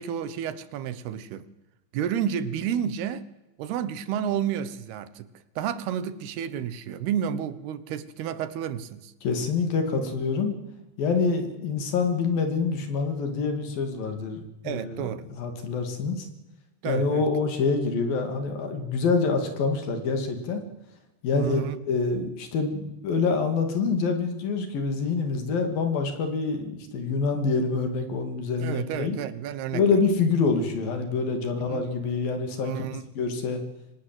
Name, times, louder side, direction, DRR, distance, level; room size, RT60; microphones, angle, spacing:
voice 1, 0.0-1.5 1.9-3.3 3.6-5.3 5.6-9.1 14.6-15.3 16.8-17.3 21.3-21.8 28.6-30.0 31.7-31.9 32.6-33.0, right 9 dB, 75° right, 3.0 m, -31 dB
voice 2, 9.2-10.6 11.0-16.3 16.8-20.6 21.2-21.6 21.9-29.2 29.7-32.8 33.2-33.6, left 4 dB, 60° left, 4.2 m, -26 dB
25.0 x 18.5 x 7.9 m
omnidirectional pair, 4.8 m